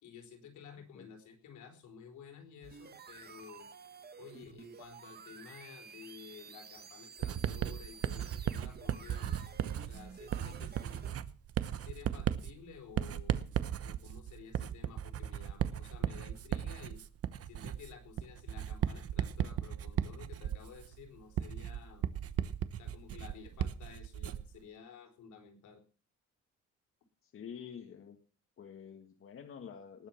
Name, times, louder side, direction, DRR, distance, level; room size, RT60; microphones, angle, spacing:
voice 1, 0.0-3.7 4.2-11.2 11.7-17.0 17.4-22.0 22.7-25.8, left 6 dB, 80° left, 5 dB, 4.6 m, -53 dB
sound 1, 2.6-11.1, right 6 dB, 35° right, 1.5 m, -52 dB
Writing, 7.2-24.6, right 10 dB, 55° right, 1.0 m, -36 dB
voice 2, 27.2-28.2 28.6-30.1, left 7 dB, 45° left, 6 dB, 1.7 m, -48 dB
19.0 x 8.0 x 6.0 m, 0.37 s
cardioid pair, 135°, 29 cm